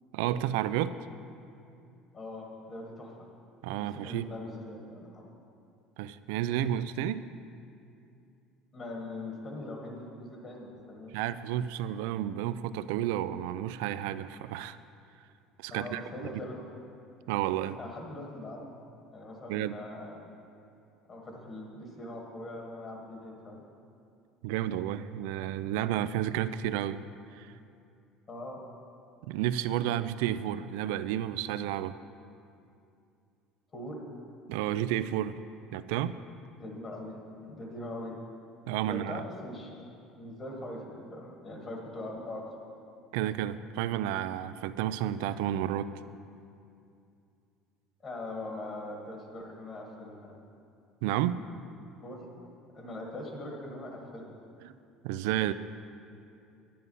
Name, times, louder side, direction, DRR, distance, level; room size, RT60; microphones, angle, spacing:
voice 1, 0.1-1.0 3.6-4.3 6.0-7.3 11.1-14.8 15.6-16.3 17.3-17.8 19.5-19.8 24.4-27.0 27.3-27.5 29.3-32.0 34.5-35.4 35.7-36.2 38.7-39.2 43.1-45.9 51.0-51.4 54.6-54.7 55.0-55.5, right 11 dB, 90° right, 14 dB, 0.4 m, -31 dB
voice 2, 2.1-3.1 3.8-5.2 8.7-11.1 15.7-16.7 17.8-18.8 19.1-20.2 21.1-23.6 28.3-28.6 33.7-34.0 36.5-38.2 38.8-39.7 40.1-42.4 48.0-50.4 52.0-52.3 52.7-54.3, left 1 dB, 30° left, 0 dB, 1.5 m, -41 dB
10.5 x 9.6 x 5.5 m, 2.5 s
cardioid pair, 150°, 0 cm